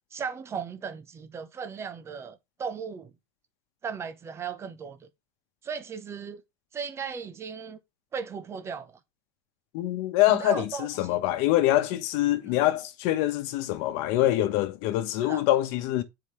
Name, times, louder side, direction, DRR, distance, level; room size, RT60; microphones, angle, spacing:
voice 1, 0.1-3.1 3.8-5.1 5.6-6.4 6.7-7.8 8.1-8.9 10.3-11.2 12.5-12.6 15.3-15.4, right 6 dB, 20° right, 0.8 m, -36 dB
voice 2, 9.7-16.0, left 14 dB, 60° left, 1.1 m, -25 dB
9.3 x 4.9 x 3.2 m
cardioid pair, 155°, 13 cm